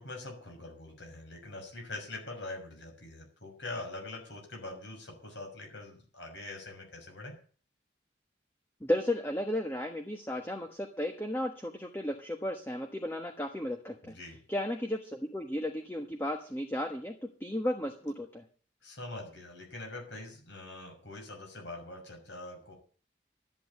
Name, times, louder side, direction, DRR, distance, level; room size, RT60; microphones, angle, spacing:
voice 1, 0.0-7.4 14.0-14.4 18.8-22.8, left 2 dB, 80° left, 1 dB, 6.0 m, -43 dB
voice 2, 8.8-14.1 14.5-18.4, left 1 dB, 10° left, 5 dB, 1.2 m, -34 dB
13.0 x 8.6 x 8.4 m, 0.43 s
head